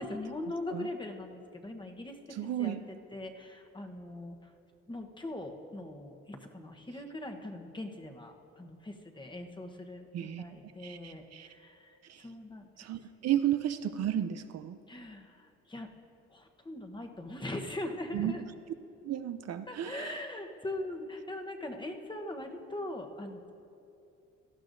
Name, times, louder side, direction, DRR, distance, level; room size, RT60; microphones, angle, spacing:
voice 1, 0.0-2.8 3.1-4.4 4.9-11.9 12.2-12.7 14.9-15.9 16.3-18.4 19.7-23.5, left 1 dB, 15° left, 4 dB, 1.0 m, -41 dB
voice 2, 2.3-2.8 10.1-10.4 10.8-11.5 12.1-12.3 12.8-14.8 18.1-18.5 19.0-20.2, right 11 dB, 55° right, 10 dB, 0.5 m, -33 dB
18.0 x 12.5 x 2.6 m, 2.7 s
cardioid pair, 90°, 30 cm